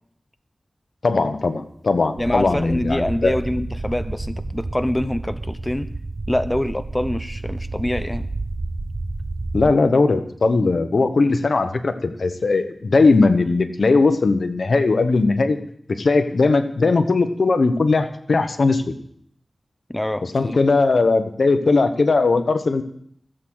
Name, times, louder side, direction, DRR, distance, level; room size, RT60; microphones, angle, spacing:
voice 1, 1.0-3.3 9.5-15.6 15.9-19.0 20.3-22.8, left 3 dB, 80° left, 9 dB, 1.1 m, -19 dB
voice 2, 2.2-5.9 6.3-8.3 19.9-20.6, left 1 dB, 15° left, 10 dB, 0.7 m, -25 dB
sound 1, 2.2-9.8, right 2 dB, 45° right, 0.8 m, -30 dB
15.5 x 8.0 x 6.2 m, 0.65 s
wide cardioid pair, 70°, 0 cm